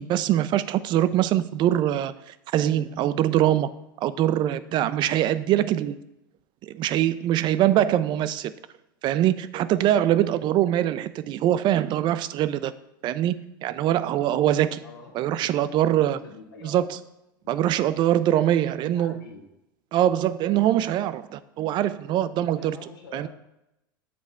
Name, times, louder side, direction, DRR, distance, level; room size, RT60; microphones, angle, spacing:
voice 1, 0.0-3.7 4.0-6.0 6.6-8.5 9.0-12.7 13.0-14.8 15.1-16.2 16.6-17.0 17.5-19.2 19.9-22.8 23.1-23.3, right 12 dB, 45° right, 15 dB, 0.4 m, -23 dB
voice 2, 14.8-16.9 17.4-19.5 22.5-23.3, left 3 dB, 85° left, 0 dB, 0.9 m, -45 dB
7.4 x 4.1 x 3.5 m, 0.88 s
hypercardioid pair, 90°, 12 cm